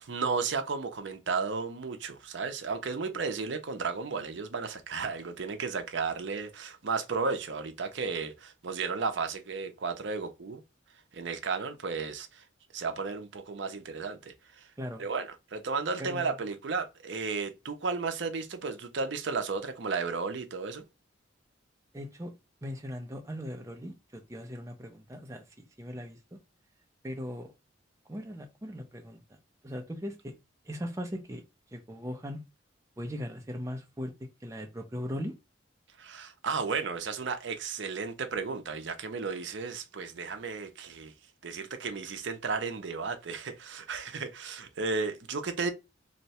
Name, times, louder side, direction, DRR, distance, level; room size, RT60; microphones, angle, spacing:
voice 1, 0.0-10.6 11.1-12.4 12.7-14.7 15.0-20.8 36.0-41.1 41.4-45.7, right 4 dB, 60° right, 0.5 m, -34 dB
voice 2, 16.0-16.3 21.9-22.3 22.6-25.4 25.8-26.4 27.0-27.5 28.1-29.2 29.6-30.3 30.6-31.4 31.7-32.4 33.0-34.1 34.4-35.3, equal, 15° right, 0.4 m, -39 dB
2.7 x 2.2 x 4.0 m
head